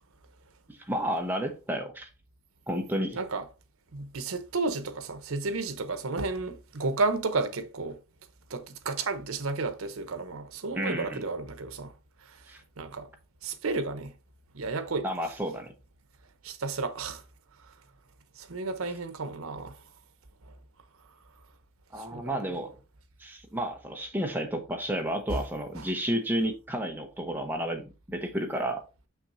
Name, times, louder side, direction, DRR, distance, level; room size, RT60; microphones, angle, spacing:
voice 1, 0.7-2.1 2.7-3.2 10.7-11.2 12.5-12.6 15.0-15.7 21.9-22.7 23.2-28.8, equal, 10° right, 0.9 m, -31 dB
voice 2, 3.1-3.4 3.9-8.0 8.5-11.9 12.3-12.4 12.8-13.1 13.4-14.1 14.5-15.1 16.4-17.2 18.4-19.7 22.0-22.4 25.3-25.4 25.8-25.9, right 3 dB, 85° right, 0.9 m, -32 dB
6.1 x 5.9 x 2.6 m
head